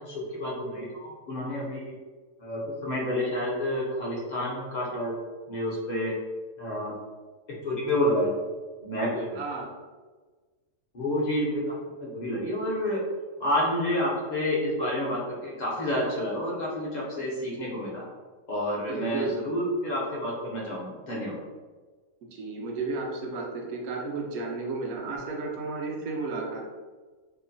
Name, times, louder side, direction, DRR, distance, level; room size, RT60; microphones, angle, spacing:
voice 1, 0.0-1.9 2.4-5.2 5.5-6.1 6.6-6.9 7.6-8.3 8.8-9.4 10.9-11.7 12.0-13.0 13.4-18.1 18.5-21.4, left 1 dB, 45° left, -5 dB, 0.6 m, -29 dB
voice 2, 9.4-9.7 18.9-19.4 22.3-26.7, right 3 dB, 75° right, -1 dB, 1.0 m, -33 dB
2.8 x 2.2 x 2.6 m, 1.4 s
omnidirectional pair, 1.5 m